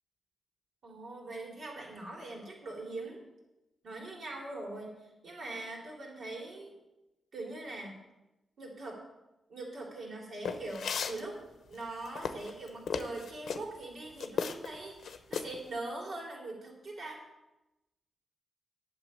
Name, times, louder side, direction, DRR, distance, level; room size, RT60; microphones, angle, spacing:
voice 1, 0.8-3.2 3.8-6.7 7.3-8.0 8.6-9.0 9.5-11.4 11.7-17.2, right 2 dB, 65° right, -1 dB, 3.6 m, -42 dB
sound 1, 10.5-11.2 11.8-13.6 14.2-14.8 15.0-15.6, left 6 dB, 80° left, 0.8 m, -35 dB
9.0 x 7.0 x 8.7 m, 0.97 s
cardioid pair, 70°, 0 cm